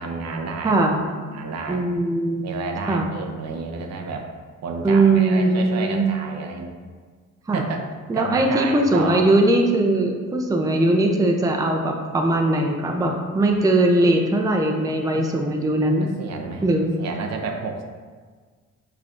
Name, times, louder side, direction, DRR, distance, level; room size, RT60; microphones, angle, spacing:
voice 1, 0.0-0.8 1.2-1.8 2.4-4.3 4.6-6.7 7.5-7.9 8.1-9.2 15.1-15.4 15.8-16.7 17.0-17.8, right 4 dB, 60° right, 2 dB, 0.6 m, -31 dB
voice 2, 0.6-1.1 1.7-2.5 2.9-3.1 4.8-6.1 7.5-7.6 8.1-16.1 16.6-16.9, right 2 dB, 10° right, 2 dB, 0.5 m, -20 dB
5.9 x 3.3 x 2.5 m, 1.5 s
cardioid pair, 90°, 30 cm